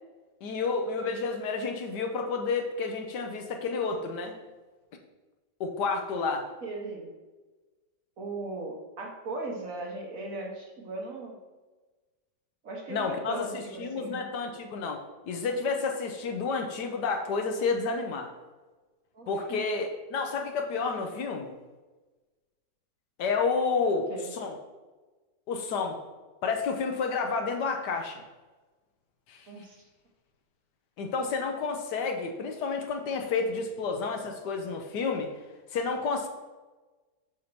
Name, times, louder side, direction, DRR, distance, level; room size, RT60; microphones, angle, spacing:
voice 1, 0.4-4.4 5.6-6.5 12.9-15.0 15.3-18.3 19.3-21.5 23.2-24.1 24.3-24.5 25.5-26.0 26.4-28.2 29.3-29.5 31.0-35.3 35.7-36.3, left 4 dB, 75° left, 4 dB, 1.3 m, -30 dB
voice 2, 6.6-7.1 8.2-11.4 12.6-14.2 19.1-19.6 23.9-24.3 29.5-29.8, right 2 dB, 55° right, 0 dB, 1.4 m, -38 dB
7.5 x 2.8 x 6.0 m, 1.2 s
omnidirectional pair, 1.9 m